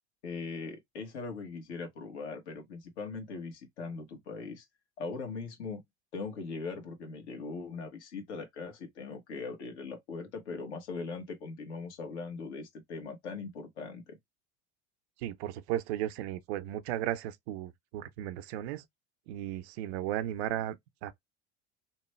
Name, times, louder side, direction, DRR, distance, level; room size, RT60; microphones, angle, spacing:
voice 1, 0.2-4.6 5.0-5.8 6.1-14.2, left 4 dB, 75° left, 1.3 m, -40 dB
voice 2, 15.2-18.8 19.3-21.1, right 12 dB, 70° right, 0.6 m, -35 dB
3.0 x 2.2 x 3.0 m
hypercardioid pair, 75°, 34 cm